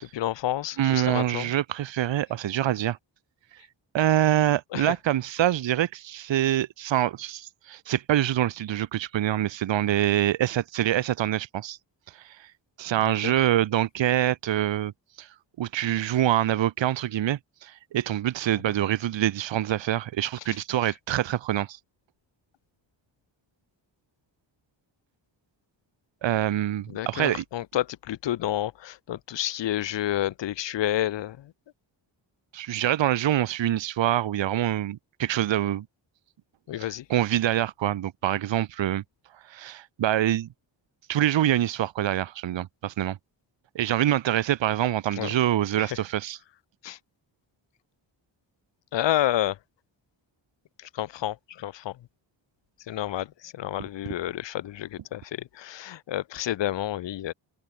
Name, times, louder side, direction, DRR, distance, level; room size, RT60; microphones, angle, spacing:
voice 1, 0.0-1.5 4.7-4.9 13.2-13.3 26.9-31.5 36.7-37.0 45.2-45.3 46.8-47.0 48.9-49.6 50.9-51.9 52.9-57.3, left 13 dB, 65° left, 0.7 m, -29 dB
voice 2, 0.8-3.0 3.9-11.8 12.1-12.5 12.8-14.9 15.2-15.3 15.6-21.8 26.2-27.4 32.5-35.8 36.8-39.0 39.5-40.5 41.1-43.2 43.7-46.4 53.8-53.9, right 12 dB, 70° right, 0.9 m, -25 dB
wide cardioid pair, 100°, 47 cm